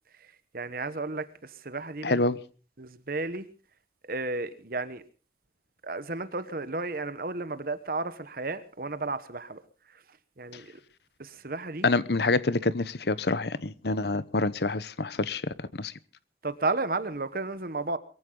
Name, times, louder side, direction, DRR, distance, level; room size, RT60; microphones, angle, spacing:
voice 1, 0.5-2.3 2.8-3.5 4.1-5.0 5.8-9.6 10.4-10.7 11.2-11.9 16.4-18.0, right 3 dB, 50° right, 13 dB, 1.1 m, -33 dB
voice 2, 2.0-2.4 11.8-15.9, left 3 dB, 60° left, 17 dB, 0.9 m, -27 dB
22.5 x 15.0 x 3.8 m, 0.38 s
head